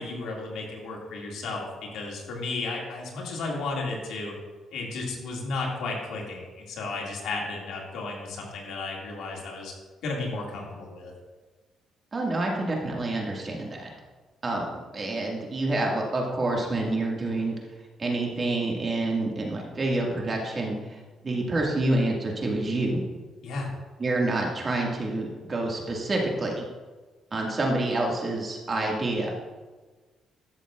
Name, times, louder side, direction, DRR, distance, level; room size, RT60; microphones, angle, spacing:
voice 1, 0.0-4.3 4.7-9.7 10.0-11.1 23.4-23.8, left 3 dB, 80° left, -2 dB, 2.2 m, -33 dB
voice 2, 12.1-13.9 14.4-14.7 14.9-17.6 18.0-23.0 24.0-26.7 27.3-29.3, right 2 dB, 35° right, -1 dB, 1.9 m, -27 dB
13.5 x 6.9 x 2.5 m, 1.3 s
cardioid pair, 90°, 0 cm